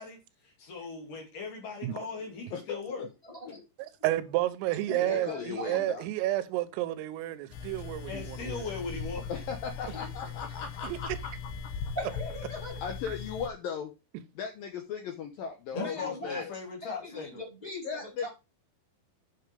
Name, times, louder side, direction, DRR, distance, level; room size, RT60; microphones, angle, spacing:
voice 1, 0.0-3.1 8.1-9.3 15.7-17.4, left 5 dB, 50° left, 3.4 m, -39 dB
voice 2, 2.5-3.1 3.5-3.6 5.1-6.0 9.3-11.1 12.8-13.9 14.4-16.5 17.8-18.3, left 7 dB, 85° left, 2.0 m, -37 dB
voice 3, 3.2-3.7 4.9-5.9 7.8-7.9 8.4-8.8 9.8-10.3 11.9-12.8 15.7-16.4 16.8-18.3, left 1 dB, 10° left, 3.1 m, -40 dB
voice 4, 4.0-8.7 10.8-11.0, right 15 dB, 85° right, 3.5 m, -31 dB
sound 1, 7.5-13.5, left 5 dB, 70° left, 2.7 m, -39 dB
9.1 x 7.3 x 3.5 m
omnidirectional pair, 5.8 m